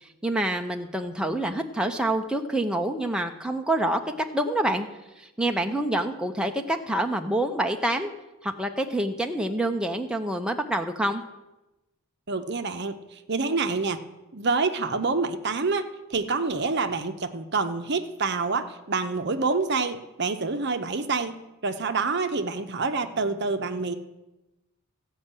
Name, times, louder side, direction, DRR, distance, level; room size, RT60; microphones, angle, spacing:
voice 1, 0.0-4.0 4.3-4.9 5.2-8.1 8.4-11.2, right 1 dB, 5° right, 3 dB, 0.6 m, -27 dB
voice 2, 12.3-14.0 14.3-23.9, right 4 dB, 50° right, 9 dB, 0.7 m, -27 dB
15.0 x 5.5 x 8.8 m, 1.0 s
head